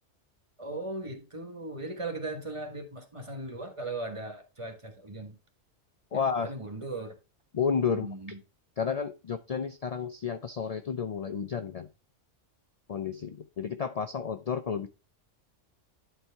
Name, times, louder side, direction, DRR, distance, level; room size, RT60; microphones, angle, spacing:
voice 1, 0.6-5.3 6.4-7.1 7.9-8.4, right 2 dB, 25° right, 1.4 m, -38 dB
voice 2, 6.1-6.5 7.5-8.1 8.8-11.9 12.9-14.9, left 6 dB, 65° left, 0.3 m, -31 dB
11.0 x 4.5 x 3.4 m
omnidirectional pair, 1.3 m